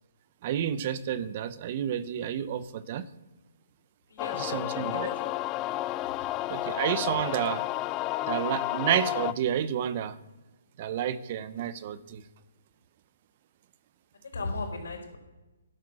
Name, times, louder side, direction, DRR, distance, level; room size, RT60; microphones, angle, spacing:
voice 1, 0.4-3.1 4.4-5.1 6.5-7.6 8.2-10.2 10.8-12.2, right 10 dB, 40° right, 15 dB, 0.8 m, -30 dB
voice 2, 4.1-5.4 14.3-15.2, left 3 dB, 75° left, 2 dB, 4.7 m, -37 dB
sound 1, 4.2-9.3, left 16 dB, 20° left, 0.3 m, -31 dB
12.0 x 9.2 x 6.3 m, 1.1 s
hypercardioid pair, 150°, 0 cm